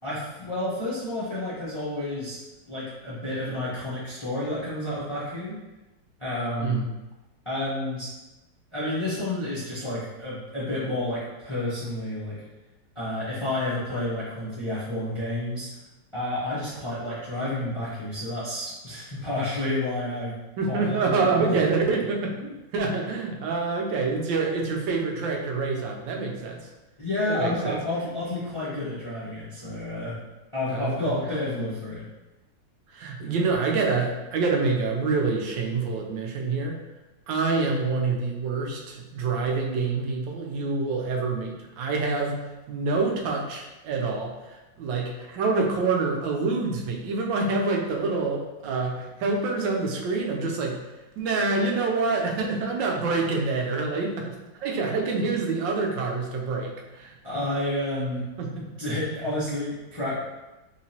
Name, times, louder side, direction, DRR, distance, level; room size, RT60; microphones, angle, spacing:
voice 1, 0.0-2.4 2.7-5.5 6.2-6.9 7.4-8.1 8.7-12.4 12.9-15.7 16.1-20.3 20.7-21.6 27.0-30.2 30.5-32.0 57.2-58.3 58.6-60.2, left 1 dB, 30° left, -10 dB, 0.6 m, -30 dB
voice 2, 20.6-26.6 27.3-27.8 30.7-31.0 32.9-36.8 37.3-42.4 42.7-50.8 51.2-57.4 58.4-58.6, right 4 dB, 85° right, 0 dB, 1.3 m, -26 dB
3.7 x 2.9 x 2.8 m, 1.0 s
omnidirectional pair, 2.0 m